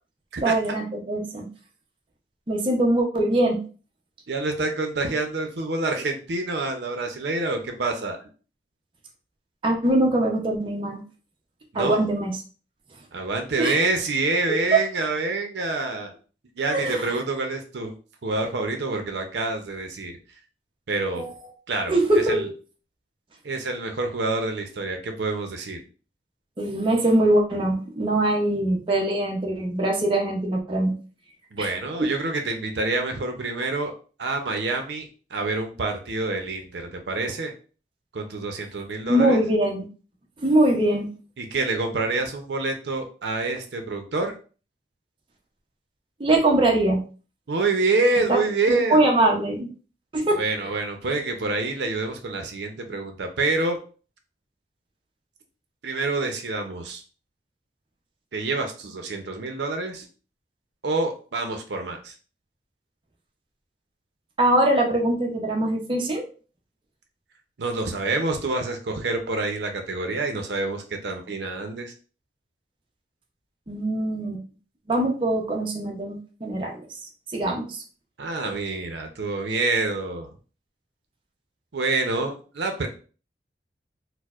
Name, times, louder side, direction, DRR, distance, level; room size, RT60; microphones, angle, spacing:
voice 1, 0.4-1.5 2.5-3.6 9.6-11.0 11.7-12.3 13.6-13.7 14.5-14.8 16.7-17.1 21.1-21.5 21.9-22.5 26.6-31.0 31.6-31.7 32.0-32.1 39.0-39.9 40.4-41.1 46.2-47.0 48.3-48.4 48.7-49.7 50.1-50.8 64.4-66.2 73.7-74.4 74.9-76.8 77.3-77.8, right 1 dB, 30° right, 0 dB, 0.6 m, -22 dB
voice 2, 4.3-8.2 11.7-12.1 13.1-16.1 16.6-17.9 18.2-20.1 20.9-21.2 21.7-21.9 22.3-22.5 23.4-25.8 31.5-33.9 34.2-37.5 38.1-39.4 41.4-44.3 47.5-49.0 50.4-53.8 55.8-57.0 58.3-60.0 60.8-62.1 67.6-71.9 78.2-80.3 81.7-82.9, right 3 dB, 75° right, 5 dB, 0.6 m, -27 dB
4.5 x 2.0 x 2.3 m, 0.37 s
head